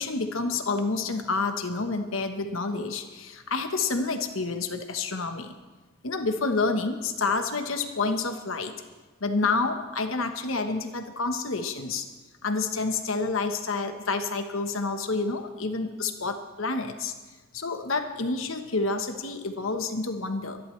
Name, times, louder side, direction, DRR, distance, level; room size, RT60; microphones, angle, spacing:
voice 1, 0.0-5.5 6.0-8.7 9.2-12.1 12.4-17.1 17.5-20.6, left 3 dB, 70° left, 6 dB, 1.2 m, -29 dB
23.5 x 11.5 x 3.3 m, 1.3 s
head